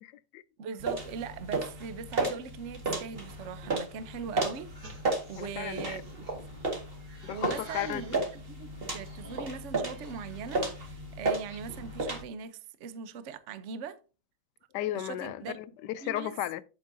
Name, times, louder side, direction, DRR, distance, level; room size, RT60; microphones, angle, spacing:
voice 1, 0.0-0.4 5.4-6.0 7.2-8.3 14.7-16.6, left 13 dB, 80° left, 1.0 m, -35 dB
voice 2, 0.6-4.7 5.3-6.2 7.3-14.0 14.9-15.6 16.0-16.3, right 6 dB, 65° right, 0.7 m, -41 dB
sound 1, 0.8-12.2, right 2 dB, 30° right, 1.8 m, -34 dB
sound 2, 4.7-8.4 8.9-10.6 11.0-12.0, right 3 dB, 45° right, 3.7 m, -48 dB
8.6 x 8.2 x 2.7 m
omnidirectional pair, 2.3 m